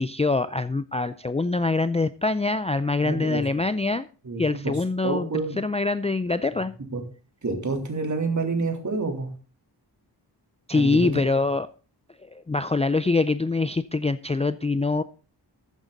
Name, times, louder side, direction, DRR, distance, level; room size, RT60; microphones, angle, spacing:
voice 1, 0.0-4.1 4.4-5.3 5.6-6.7 10.7-11.7 12.3-15.0, left 3 dB, 15° left, 13 dB, 0.4 m, -24 dB
voice 2, 3.0-3.4 4.2-4.8 5.0-5.6 6.9-7.0 7.4-9.3 10.7-11.2, right 3 dB, 45° right, 4 dB, 3.3 m, -28 dB
13.5 x 9.1 x 3.9 m, 0.36 s
wide cardioid pair, 95°, 42 cm